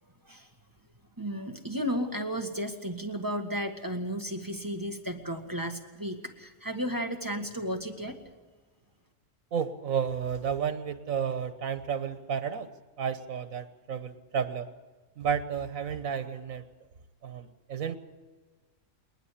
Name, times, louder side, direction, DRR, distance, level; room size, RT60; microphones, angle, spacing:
voice 1, 1.2-8.2, equal, 15° right, 4 dB, 1.8 m, -33 dB
voice 2, 9.5-12.7 13.0-14.7 15.2-16.6 17.2-18.0, right 7 dB, 90° right, 10 dB, 1.5 m, -32 dB
28.0 x 11.0 x 10.0 m, 1.3 s
omnidirectional pair, 1.4 m